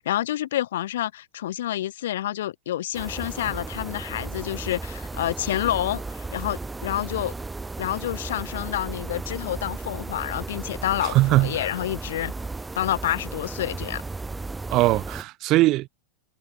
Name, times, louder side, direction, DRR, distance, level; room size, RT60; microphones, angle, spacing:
voice 1, 0.0-7.3 7.8-12.3 12.7-14.0, left 13 dB, 80° left, 1.2 m, -28 dB
sound 1, 2.9-15.2, right 3 dB, 10° right, 1.6 m, -35 dB
voice 2, 11.0-11.6 14.7-15.9, right 18 dB, 45° right, 0.5 m, -20 dB
supercardioid pair, 130°, 0 cm